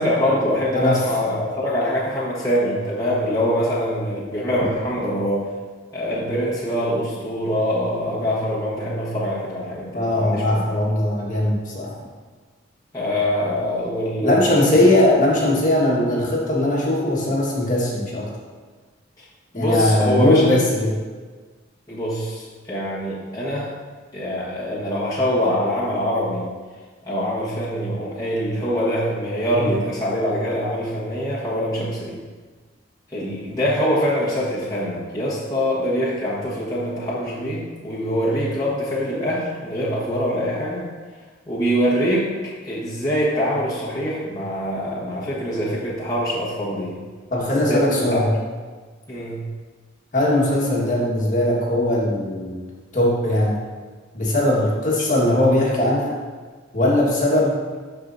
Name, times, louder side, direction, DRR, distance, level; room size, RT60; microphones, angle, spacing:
voice 1, 0.0-5.4 5.9-10.7 12.9-15.0 19.2-19.3 19.5-20.4 21.9-23.7 24.1-26.5 27.0-32.2 33.1-40.8 41.5-42.3 42.6-47.0 47.4-48.2 49.1-49.4, equal, 20° left, -8 dB, 1.4 m, -24 dB
voice 2, 9.9-11.9 14.2-18.3 19.5-20.9 29.7-29.8 31.8-31.9 47.3-48.3 50.1-52.6 52.9-53.6 54.1-56.1 56.7-57.6, left 1 dB, 40° left, -4 dB, 1.5 m, -19 dB
12.0 x 4.8 x 2.7 m, 1.4 s
head